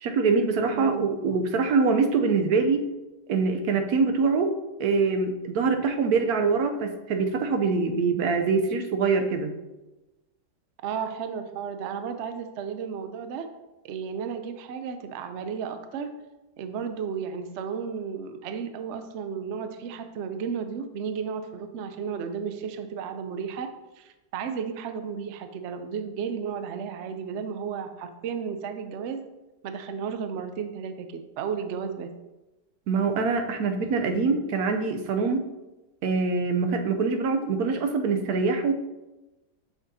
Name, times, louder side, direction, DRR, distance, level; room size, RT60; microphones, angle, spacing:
voice 1, 0.0-2.9 3.3-4.5 4.8-9.5 32.9-35.4 36.0-38.7, right 4 dB, 65° right, 6 dB, 1.1 m, -24 dB
voice 2, 0.7-1.1 10.8-13.5 13.8-16.1 16.6-29.2 29.6-32.1, right 6 dB, 85° right, 8 dB, 0.6 m, -33 dB
8.2 x 5.9 x 2.7 m, 1.1 s
omnidirectional pair, 1.9 m